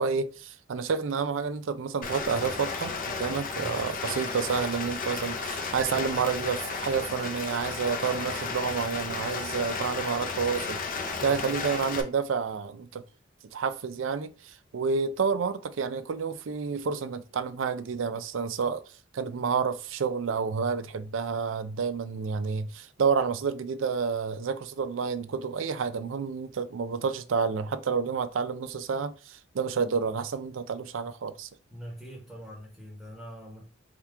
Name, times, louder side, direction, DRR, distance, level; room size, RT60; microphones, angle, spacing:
voice 1, 0.0-13.0 13.5-31.5, right 5 dB, 80° right, 0.4 m, -29 dB
Rain, 2.0-12.0, left 4 dB, 45° left, 0.6 m, -33 dB
voice 2, 11.2-11.6 31.7-33.6, equal, 5° right, 1.0 m, -43 dB
3.6 x 2.9 x 4.6 m
head